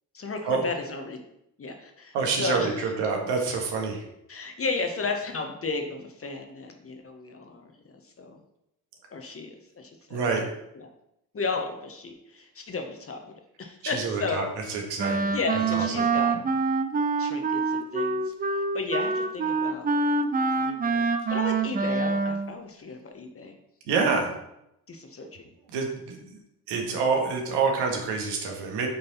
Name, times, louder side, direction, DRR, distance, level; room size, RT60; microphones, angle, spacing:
voice 1, 0.1-1.2 1.6-2.9 4.3-8.4 9.1-10.2 10.8-10.9 11.3-14.5 15.1-16.4 17.2-19.9 20.6-21.0 21.3-23.5 24.9-25.4 26.7-27.0, left 4 dB, 30° left, 4 dB, 1.2 m, -34 dB
voice 2, 2.1-4.0 10.1-10.4 13.9-14.4 14.7-15.3 15.7-16.0 23.9-24.3 25.7-26.4 26.7-28.9, right 4 dB, 60° right, 2 dB, 1.7 m, -27 dB
Wind instrument woodwind instrument, 15.0-22.5, right 4 dB, 20° right, 0.6 m, -26 dB
8.0 x 5.3 x 4.1 m, 0.81 s
figure-of-eight pair, 45°, 48 cm